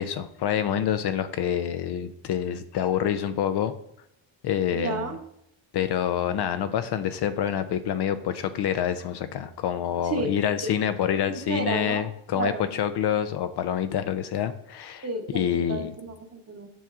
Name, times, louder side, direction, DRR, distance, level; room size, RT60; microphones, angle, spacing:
voice 1, 0.0-3.7 4.4-5.1 5.7-15.0 15.3-16.0, left 9 dB, 55° left, 10 dB, 0.5 m, -27 dB
voice 2, 4.7-5.2 10.1-10.8 11.3-12.1 12.3-12.7 15.0-16.7, right 3 dB, 30° right, 4 dB, 1.0 m, -32 dB
7.1 x 5.8 x 2.4 m, 0.76 s
cardioid pair, 80°, 50 cm